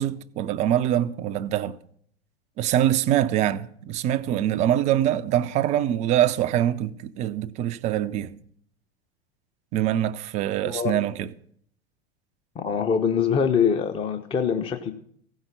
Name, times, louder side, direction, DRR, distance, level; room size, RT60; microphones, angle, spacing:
voice 1, 0.0-1.8 2.6-8.4 9.7-11.3, right 11 dB, 25° right, 0.4 m, -24 dB
voice 2, 10.6-11.0 12.6-14.9, left 7 dB, 15° left, 0.7 m, -24 dB
15.5 x 5.5 x 8.8 m
figure-of-eight pair, 90°, 32 cm